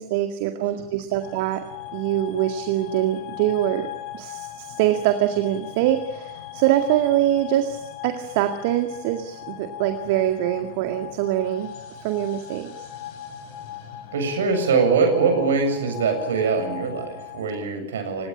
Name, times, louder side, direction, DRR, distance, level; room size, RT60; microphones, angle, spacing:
voice 1, 0.0-1.6 1.9-3.9 4.1-11.7 12.0-12.7, right 12 dB, 50° right, 7 dB, 2.0 m, -24 dB
sound 1, 1.2-17.5, left 10 dB, 50° left, 5.5 m, -39 dB
voice 2, 14.1-18.3, right 5 dB, 65° right, 6 dB, 7.4 m, -22 dB
29.5 x 17.5 x 8.9 m, 0.90 s
figure-of-eight pair, 90°, 0 cm